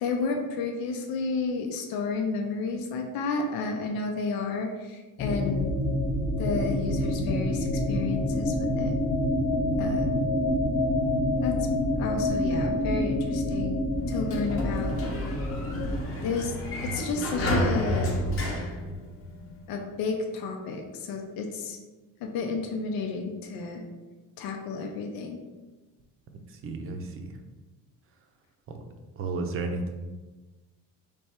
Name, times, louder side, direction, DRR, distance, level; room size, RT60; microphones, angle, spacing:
voice 1, 0.0-5.7 6.4-8.9 9.8-10.1 11.4-11.7 12.0-13.8 14.1-15.0 16.2-16.5 16.8-18.2 19.7-21.8 22.2-23.8 24.4-25.4, left 4 dB, 85° left, 3 dB, 0.7 m, -31 dB
sound 1, 5.2-16.0, left 1 dB, 20° left, 0.4 m, -27 dB
Sliding door, 14.0-19.6, equal, 40° left, 0.8 m, -31 dB
voice 2, 26.5-27.4 28.7-28.8 29.2-29.9, right 3 dB, 40° right, 5 dB, 0.6 m, -33 dB
3.4 x 3.3 x 4.3 m, 1.2 s
cardioid pair, 155°, 35 cm